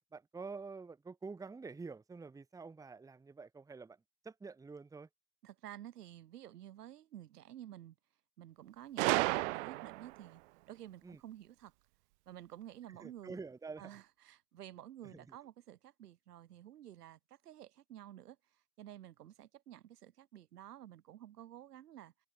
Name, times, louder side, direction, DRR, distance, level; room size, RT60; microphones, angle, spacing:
voice 1, 0.1-5.1 11.0-11.2 12.9-14.0 15.0-15.4, right 4 dB, 5° right, 1.3 m, -48 dB
voice 2, 5.4-8.0 8.4-10.4 10.7-11.7 12.3-13.4 13.8-18.4 18.8-22.1, right 12 dB, 85° right, 2.3 m, -52 dB
Gunshot gunfire, 9.0-10.2, right 23 dB, 50° right, 0.4 m, -32 dB
hypercardioid pair, 130°, 46 cm